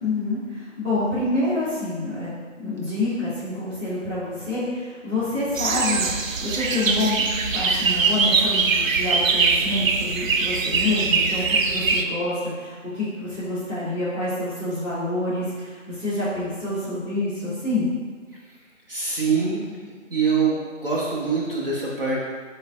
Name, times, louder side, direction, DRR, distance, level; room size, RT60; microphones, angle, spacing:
voice 1, 0.0-2.3 2.6-6.1 6.4-17.9, left 2 dB, 10° right, -14 dB, 0.9 m, -27 dB
sound 1, 5.6-12.0, right 4 dB, 90° right, 0.5 m, -22 dB
voice 2, 18.9-19.6 20.1-22.2, right 5 dB, 45° right, -5 dB, 0.8 m, -24 dB
5.2 x 3.1 x 2.4 m, 1.5 s
figure-of-eight pair, 155°, 38 cm